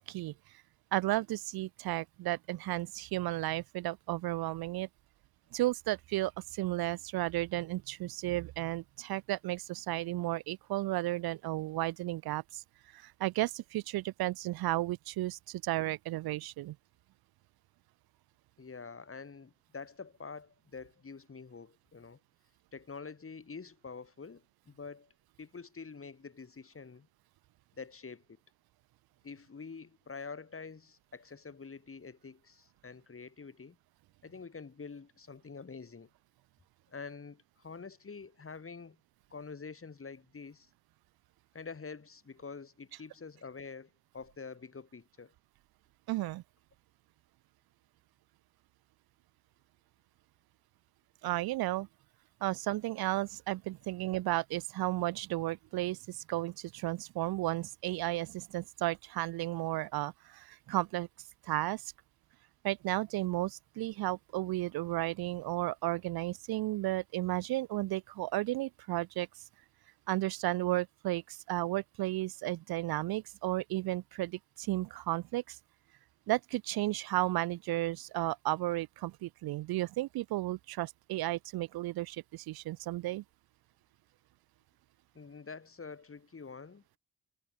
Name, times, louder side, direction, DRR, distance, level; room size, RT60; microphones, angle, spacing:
voice 1, 0.9-4.9 5.5-12.6 12.9-16.8 46.1-46.4 51.2-51.9 52.4-61.1 61.4-61.9 62.6-69.3 70.1-75.6 76.3-83.2, right 17 dB, 75° right, 0.5 m, -33 dB
voice 2, 18.6-22.2 22.7-25.1 25.4-27.1 27.8-28.2 29.2-33.8 34.2-36.1 36.9-39.0 39.3-40.7 41.5-45.3 85.1-86.8, left 5 dB, 35° left, 4.9 m, -47 dB
cardioid pair, 75°, 38 cm